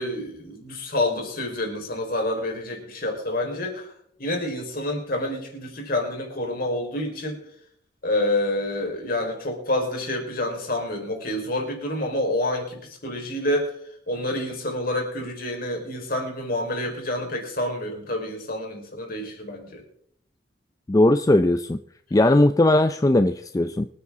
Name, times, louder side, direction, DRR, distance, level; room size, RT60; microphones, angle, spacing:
voice 1, 0.0-3.9 4.2-7.4 8.0-13.8 14.1-19.8, left 1 dB, 50° left, 2 dB, 4.3 m, -28 dB
voice 2, 20.9-21.8 22.1-23.9, left 1 dB, 20° left, 10 dB, 0.4 m, -18 dB
25.5 x 9.6 x 3.7 m, 0.69 s
head